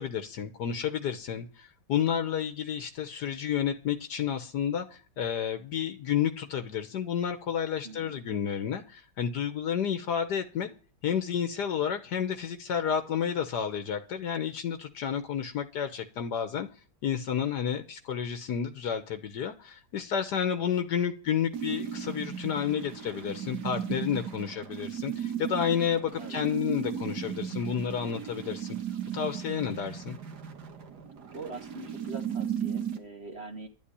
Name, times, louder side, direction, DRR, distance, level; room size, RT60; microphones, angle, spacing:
voice 1, 0.0-10.7 11.0-16.7 17.0-28.8 29.1-30.2, left 8 dB, 75° left, 8 dB, 1.6 m, -31 dB
voice 2, 7.8-8.2 26.2-26.4 31.3-33.7, right 3 dB, 35° right, 3 dB, 1.9 m, -43 dB
sound 1, 21.5-33.0, right 8 dB, 70° right, 2.1 m, -36 dB
11.5 x 8.7 x 9.8 m, 0.41 s
omnidirectional pair, 1.8 m